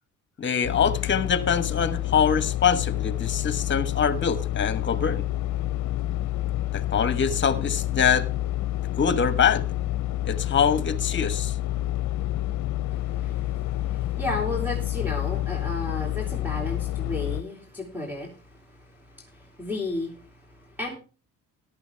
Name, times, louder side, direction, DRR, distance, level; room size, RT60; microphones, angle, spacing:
voice 1, 0.4-5.2 6.7-8.3 9.0-9.6 10.2-11.5, left 7 dB, 40° left, 1.3 m, -24 dB
sound 1, 0.6-17.4, left 14 dB, 70° left, 0.6 m, -28 dB
voice 2, 12.9-21.0, left 2 dB, 5° right, 2.7 m, -34 dB
14.0 x 11.5 x 3.4 m
cardioid pair, 90°, 30 cm